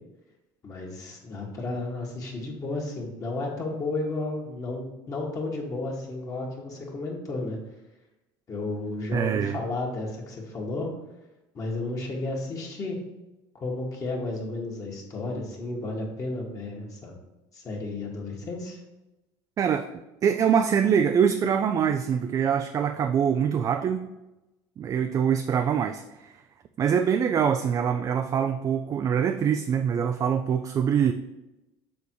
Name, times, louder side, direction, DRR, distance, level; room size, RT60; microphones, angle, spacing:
voice 1, 0.6-7.6 8.5-10.9 11.5-13.0 13.5-17.1 17.5-18.8, left 2 dB, 35° left, -2 dB, 1.7 m, -33 dB
voice 2, 9.1-9.6 19.6-19.9 20.2-24.1 24.8-26.4 26.8-31.1, right 7 dB, 35° right, 7 dB, 0.4 m, -24 dB
7.0 x 3.5 x 4.6 m, 0.99 s
supercardioid pair, 110°, 10 cm